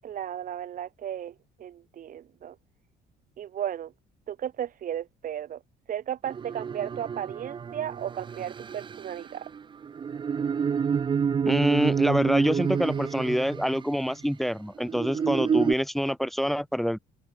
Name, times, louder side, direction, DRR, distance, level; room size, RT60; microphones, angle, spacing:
voice 1, 0.0-2.6 3.4-3.9 4.3-5.6 5.9-9.5, right 10 dB, 55° right, 2.3 m, -35 dB
sound 1, 6.3-14.1 14.8-15.7, right 6 dB, 30° right, 0.6 m, -29 dB
voice 2, 11.5-17.0, equal, ahead, 3.6 m, -26 dB
cardioid pair, 110°, 17 cm